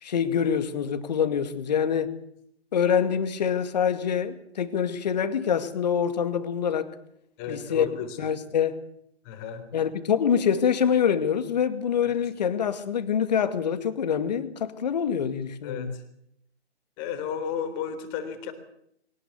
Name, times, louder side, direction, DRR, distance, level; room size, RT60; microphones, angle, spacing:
voice 1, 0.0-2.1 2.7-6.9 7.5-7.9 8.2-8.8 9.7-16.0, left 7 dB, 40° left, 2.3 m, -25 dB
voice 2, 7.4-8.2 9.3-9.7 12.0-12.1 15.6-15.9 17.0-18.5, left 8 dB, 20° left, 3.7 m, -33 dB
23.0 x 18.5 x 8.3 m
figure-of-eight pair, 140°, 34 cm